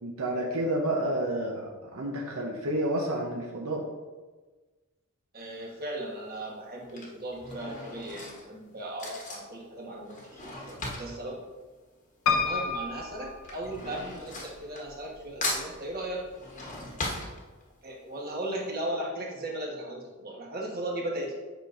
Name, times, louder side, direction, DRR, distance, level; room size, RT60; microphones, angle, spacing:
voice 1, 0.0-3.8, right 1 dB, 85° right, 0 dB, 0.8 m, -30 dB
voice 2, 5.3-11.5 12.3-16.3 17.8-21.3, right 1 dB, 45° right, -2 dB, 1.3 m, -37 dB
Drawer open or close / Cutlery silverware, 5.4-5.8 6.6-12.5 12.8-15.2 15.4-17.9 18.4-18.5 18.7-18.8, left 2 dB, 35° left, 1.1 m, -38 dB
Piano, 12.3-14.2 14.9-15.6 15.9-16.0 16.2-16.3, left 5 dB, 85° left, 0.7 m, -30 dB
8.2 x 5.0 x 2.6 m, 1.3 s
head